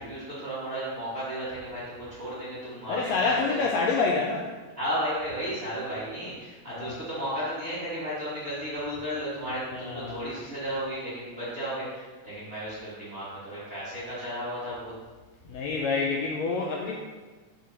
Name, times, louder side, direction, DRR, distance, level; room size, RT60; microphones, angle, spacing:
voice 1, 0.0-3.6 4.8-14.9, equal, 25° right, -10 dB, 1.6 m, -34 dB
voice 2, 2.9-4.5 6.7-6.9 9.7-10.2 15.5-17.0, left 4 dB, 75° left, -1 dB, 1.6 m, -27 dB
4.7 x 4.7 x 5.9 m, 1.3 s
omnidirectional pair, 3.6 m